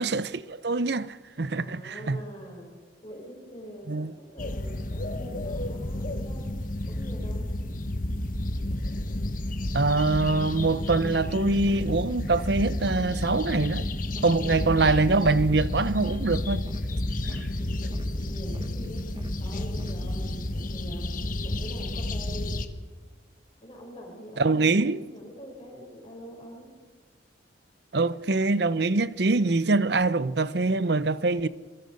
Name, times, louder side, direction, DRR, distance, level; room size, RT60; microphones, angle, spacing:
voice 1, 0.0-2.2 3.9-4.1 9.7-13.8 14.2-16.6 24.4-25.0 27.9-31.5, right 3 dB, 55° right, 0.7 m, -24 dB
voice 2, 1.6-2.7 3.0-6.5 6.8-7.5 14.3-14.6 18.1-21.1 21.4-22.6 23.6-26.7, equal, 25° left, 6.0 m, -44 dB
sound 1, 4.4-22.7, left 1 dB, 45° left, 1.2 m, -31 dB
sound 2, 10.1-20.0, right 1 dB, 25° right, 1.8 m, -45 dB
26.5 x 23.0 x 5.4 m
head